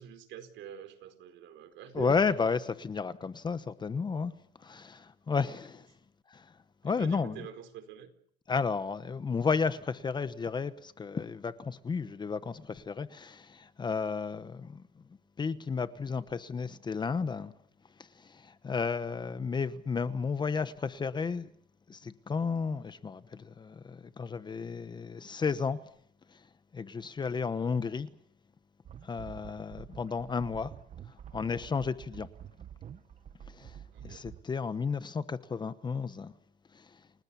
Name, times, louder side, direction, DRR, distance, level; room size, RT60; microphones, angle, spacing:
voice 1, 0.0-2.4 5.4-5.6 6.8-8.1 33.9-34.3, right 9 dB, 60° right, 4.7 m, -46 dB
voice 2, 1.9-4.3 4.6-5.9 6.3-6.5 6.8-7.4 8.5-14.8 15.4-17.5 18.0-21.5 21.9-25.8 26.3-26.4 26.7-28.1 29.0-30.7 31.3-32.3 33.5-36.3 36.7-37.0, left 5 dB, 20° left, 1.1 m, -33 dB
sound 1, 28.9-34.4, right 9 dB, 35° right, 1.0 m, -48 dB
30.0 x 19.5 x 7.1 m
cardioid pair, 145°, 21 cm